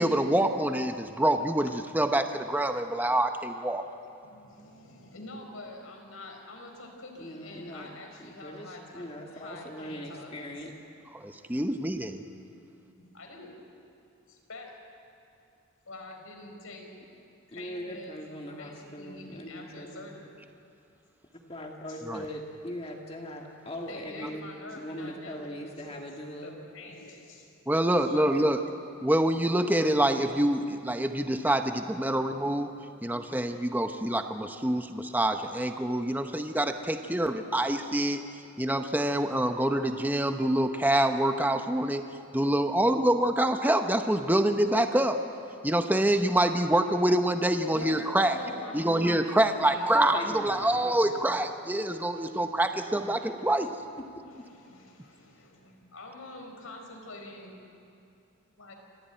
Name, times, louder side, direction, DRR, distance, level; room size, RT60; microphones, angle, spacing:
voice 1, 0.0-3.8 11.1-12.2 22.1-22.2 27.7-28.6 29.0-32.7 33.0-38.2 38.6-42.0 42.3-45.2 45.6-48.4 48.7-53.7, right 1 dB, 10° right, 6 dB, 0.8 m, -26 dB
voice 2, 4.2-10.4 12.7-13.5 14.3-14.7 15.8-16.9 17.5-18.1 18.6-20.3 21.9-22.0 23.9-27.5 28.0-28.5 47.6-49.9 50.8-51.2 52.2-52.4 52.9-53.0 53.2-53.3 54.3-57.6 58.6-58.7, left 2 dB, 85° left, 2 dB, 4.6 m, -46 dB
voice 3, 7.2-10.7 17.5-20.1 21.5-24.5 24.8-26.6 33.7-33.8 49.9-51.3 54.4-54.5, equal, 30° left, 1 dB, 1.9 m, -40 dB
26.5 x 15.0 x 9.1 m, 2.5 s
head